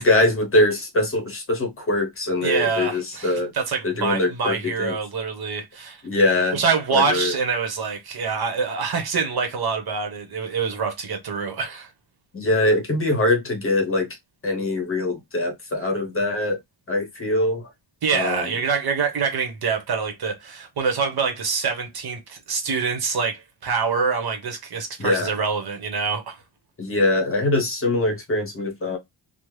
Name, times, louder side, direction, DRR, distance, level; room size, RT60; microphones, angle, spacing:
voice 1, 0.0-3.5 3.8-5.0 6.0-6.6 6.9-7.3 12.3-14.2 14.4-16.6 16.9-17.7 18.1-18.4 25.0-25.3 26.8-29.0, left 2 dB, 30° left, 0.8 m, -22 dB
voice 2, 2.4-6.0 6.5-11.9 18.0-26.4, right 5 dB, 55° right, 1.0 m, -25 dB
3.4 x 2.1 x 3.1 m
wide cardioid pair, 150°, 45 cm